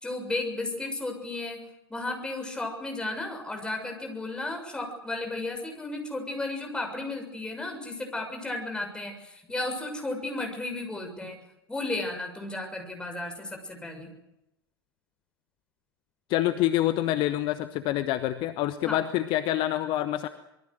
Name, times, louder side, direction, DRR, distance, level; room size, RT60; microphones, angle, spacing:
voice 1, 0.0-1.6 1.9-11.4 11.7-14.1 18.8-19.0, left 2 dB, 5° left, 3 dB, 6.8 m, -34 dB
voice 2, 16.3-20.3, left 13 dB, 35° left, 11 dB, 1.2 m, -26 dB
26.0 x 22.5 x 6.4 m, 0.89 s
figure-of-eight pair, 90°, 13 cm